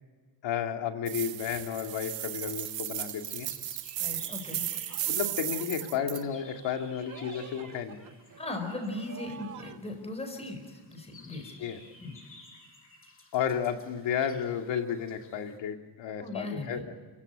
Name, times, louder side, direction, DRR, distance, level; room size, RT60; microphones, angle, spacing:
voice 1, 0.4-3.5 5.1-8.1 11.6-11.8 13.3-16.9, left 8 dB, 80° left, 4 dB, 2.5 m, -32 dB
sound 1, 1.1-6.2, right 13 dB, 85° right, 1.4 m, -35 dB
sound 2, 1.2-15.6, left 2 dB, 30° left, 7.8 m, -55 dB
voice 2, 4.0-4.6 8.4-11.6 12.0-12.2 16.2-16.9, left 2 dB, 15° left, 4 dB, 4.6 m, -38 dB
sound 3, 4.6-9.8, right 7 dB, 45° right, 1.4 m, -48 dB
29.0 x 16.5 x 9.2 m, 1.5 s
cardioid pair, 135°, 43 cm